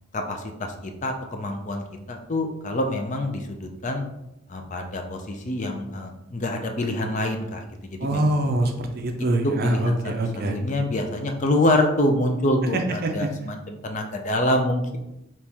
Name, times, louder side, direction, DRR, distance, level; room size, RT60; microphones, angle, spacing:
voice 1, 0.1-4.0 4.5-8.4 9.2-10.0 10.5-15.0, left 1 dB, 35° left, 4 dB, 0.5 m, -26 dB
voice 2, 8.0-10.6 12.7-13.3, right 1 dB, 45° right, 4 dB, 0.5 m, -24 dB
4.4 x 3.0 x 3.4 m, 0.88 s
head